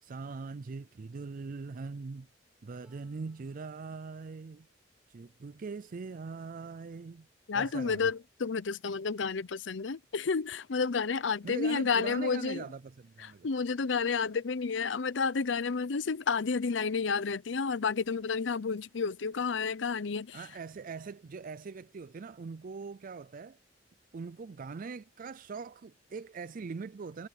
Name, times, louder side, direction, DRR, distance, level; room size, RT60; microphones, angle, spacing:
voice 1, 0.0-2.3 2.6-4.7 5.1-7.3 7.5-8.1 11.4-13.5 20.3-23.6 24.1-27.3, right 4 dB, 50° right, 0.4 m, -41 dB
Harp, 2.8-8.6 9.7-9.8, equal, 5° right, 4.7 m, -75 dB
voice 2, 7.5-12.6 13.2-20.4, left 5 dB, 80° left, 0.6 m, -31 dB
head